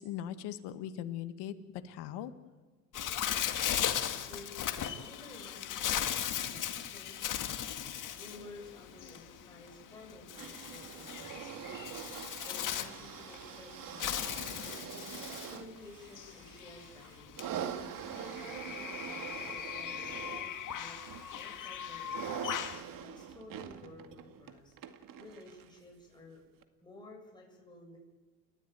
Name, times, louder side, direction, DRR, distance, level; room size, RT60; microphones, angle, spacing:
voice 1, 0.0-1.5 1.8-2.3, left 11 dB, 55° left, 9 dB, 2.0 m, -39 dB
Bird, 2.9-22.8, left 10 dB, 40° left, 2.1 m, -38 dB
voice 2, 3.7-7.6 8.1-12.0 12.5-15.1 15.5-17.5 18.1-21.0 21.3-22.5 23.0-24.8 25.2-26.4 26.8-28.0, left 2 dB, 10° left, -1 dB, 7.2 m, -53 dB
sound 1, 10.3-25.8 26.6-26.7, right 9 dB, 40° right, 2.2 m, -44 dB
30.0 x 13.0 x 9.3 m, 1.3 s
supercardioid pair, 100°, 48 cm